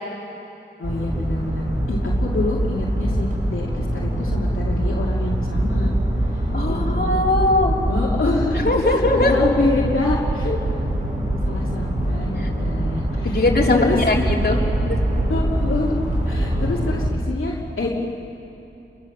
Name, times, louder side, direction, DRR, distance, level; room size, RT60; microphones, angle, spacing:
voice 1, 0.8-5.9 6.2-7.1 7.9-14.0 15.3-16.0 16.3-17.9, left 2 dB, 80° left, -4 dB, 2.5 m, -27 dB
sound 1, 0.8-17.1, right 1 dB, 40° right, 6.7 m, -23 dB
voice 2, 6.5-7.8 8.5-9.3 10.4-10.6 12.4-12.5 13.2-14.6 14.9-15.0, left 2 dB, 50° left, -2 dB, 3.8 m, -20 dB
29.0 x 23.0 x 7.3 m, 2.9 s
cardioid pair, 45°, 21 cm